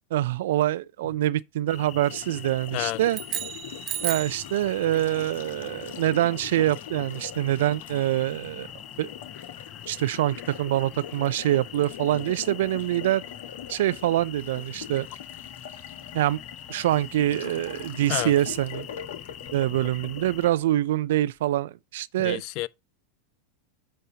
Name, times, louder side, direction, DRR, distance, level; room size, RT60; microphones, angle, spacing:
voice 1, 0.1-3.2 4.0-8.7 9.0-9.1 9.9-13.2 13.7-15.1 16.1-16.4 16.7-18.9 19.5-22.4, right 14 dB, 70° right, 0.4 m, -25 dB
sound 1, 1.7-20.5, left 10 dB, 40° left, 0.8 m, -44 dB
Water tap faucet, 2.0-21.2, left 9 dB, 75° left, 1.3 m, -43 dB
voice 2, 2.7-3.0 18.1-18.3 19.8-19.9 22.2-22.7, left 18 dB, 55° left, 0.4 m, -30 dB
sound 2, 3.1-4.5, right 11 dB, 40° right, 0.9 m, -33 dB
9.2 x 6.4 x 2.8 m
hypercardioid pair, 100°, 0 cm